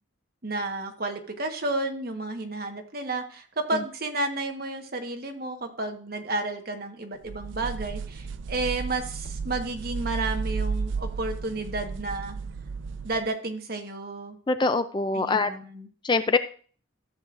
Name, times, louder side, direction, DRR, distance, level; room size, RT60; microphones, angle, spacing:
voice 1, 0.4-12.4 13.0-14.4 15.1-15.9, right 2 dB, 50° right, 5 dB, 1.2 m, -31 dB
sound 1, 7.3-13.3, right 4 dB, 75° right, 0.4 m, -33 dB
voice 2, 14.5-15.5 16.0-16.4, left 3 dB, 25° left, 10 dB, 0.4 m, -24 dB
13.5 x 7.6 x 2.5 m, 0.42 s
head